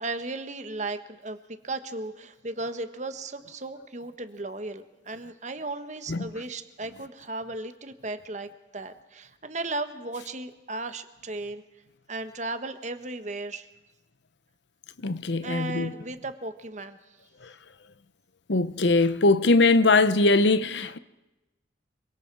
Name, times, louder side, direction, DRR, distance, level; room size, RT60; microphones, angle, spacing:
voice 1, 0.0-11.6 12.1-13.7 15.4-17.0, right 2 dB, 40° right, 1.4 m, -35 dB
voice 2, 15.0-15.9 18.5-21.0, left 3 dB, 75° left, 0.9 m, -21 dB
26.0 x 24.0 x 4.8 m
head